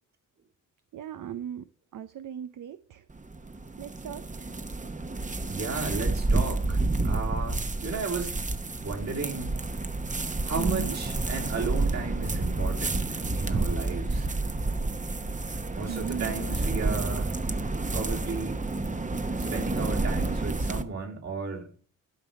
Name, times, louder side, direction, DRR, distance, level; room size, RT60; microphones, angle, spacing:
voice 1, 0.9-1.6 1.9-3.0 3.8-4.5 10.6-11.0 15.9-16.3, right 9 dB, 75° right, 12 dB, 0.7 m, -37 dB
sound 1, 3.1-20.8, right 2 dB, 25° right, 1.0 m, -29 dB
voice 2, 5.4-8.3 8.8-9.5 10.5-14.3 15.7-17.4 17.9-18.6 19.5-21.7, right 4 dB, 60° right, -1 dB, 3.6 m, -34 dB
12.5 x 5.3 x 7.4 m, 0.43 s
cardioid pair, 90°, 32 cm